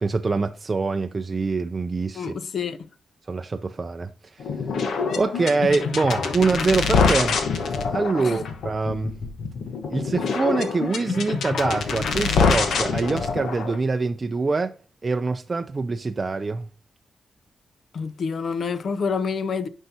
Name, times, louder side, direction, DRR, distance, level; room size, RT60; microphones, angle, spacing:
voice 1, 0.0-2.4 3.3-4.5 5.2-7.5 7.9-9.2 9.9-14.7 15.0-16.7, right 4 dB, 30° right, 0.4 m, -25 dB
voice 2, 2.2-2.9 8.2-8.4 17.9-19.7, left 5 dB, 60° left, 0.6 m, -28 dB
sound 1, 4.4-13.8, left 5 dB, 85° left, 1.2 m, -25 dB
9.4 x 5.5 x 2.8 m
wide cardioid pair, 120°, 0 cm